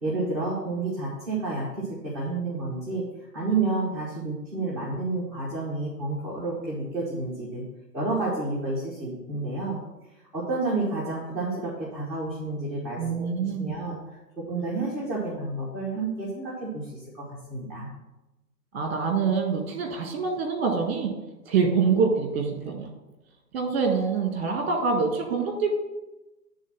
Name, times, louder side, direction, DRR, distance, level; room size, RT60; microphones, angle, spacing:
voice 1, 0.0-3.0 3.3-7.6 7.9-9.8 10.3-17.9, right 3 dB, ahead, -10 dB, 1.0 m, -30 dB
voice 2, 13.0-13.8 18.7-21.1 21.5-22.9 23.5-25.7, right 5 dB, 35° right, 3 dB, 1.7 m, -25 dB
9.1 x 3.8 x 6.0 m, 1.0 s
hypercardioid pair, 155°, 50 cm